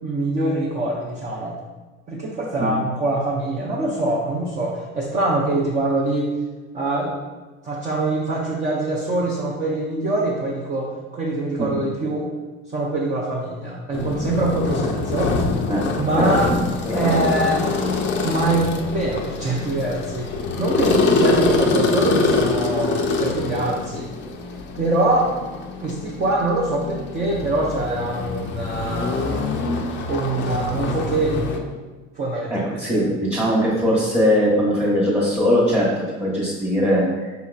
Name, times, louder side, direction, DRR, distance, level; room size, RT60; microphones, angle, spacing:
voice 1, 0.0-1.6 2.1-6.3 6.7-7.2 7.6-12.3 12.7-15.4 16.0-16.5 16.9-17.6 18.2-20.3 20.6-24.1 24.7-25.4 25.8-29.5 30.1-31.7 32.2-32.7 32.9-33.1, right 2 dB, 25° right, -5 dB, 0.7 m, -24 dB
honda concerto, 13.9-31.6, left 3 dB, 40° left, 0.5 m, -24 dB
voice 2, 16.1-17.3 17.8-17.9 20.8-20.9 32.5-37.3, equal, 5° right, -9 dB, 1.1 m, -21 dB
5.4 x 2.9 x 2.4 m, 1.2 s
supercardioid pair, 110°, 30 cm